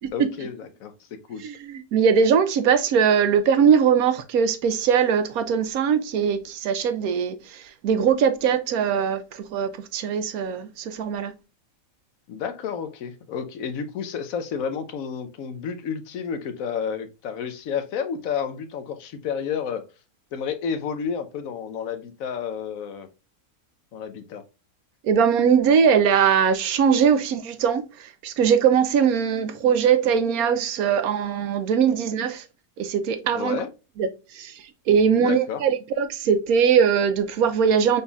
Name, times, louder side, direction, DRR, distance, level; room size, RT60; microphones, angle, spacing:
voice 1, 0.1-1.4 12.3-19.9 20.3-23.1 23.9-24.4 33.3-33.7 35.1-35.6, left 7 dB, 75° left, 1.1 m, -31 dB
voice 2, 1.4-11.3 25.0-32.4 32.8-33.6 34.0-34.1 34.3-38.0, right 7 dB, 85° right, 1.2 m, -21 dB
5.4 x 4.1 x 2.3 m
omnidirectional pair, 1.5 m